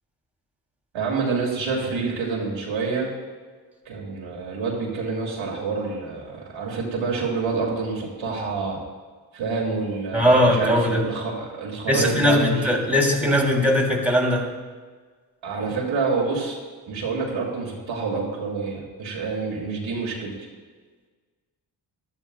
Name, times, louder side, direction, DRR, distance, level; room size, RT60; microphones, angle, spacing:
voice 1, 0.9-3.1 3.9-8.8 9.3-12.7 15.4-16.6 16.9-20.3, right 4 dB, 85° right, -2 dB, 2.4 m, -27 dB
voice 2, 10.1-11.1 11.9-14.5, left 1 dB, 5° right, -1 dB, 2.9 m, -20 dB
16.0 x 11.5 x 2.3 m, 1.5 s
cardioid pair, 60°, 46 cm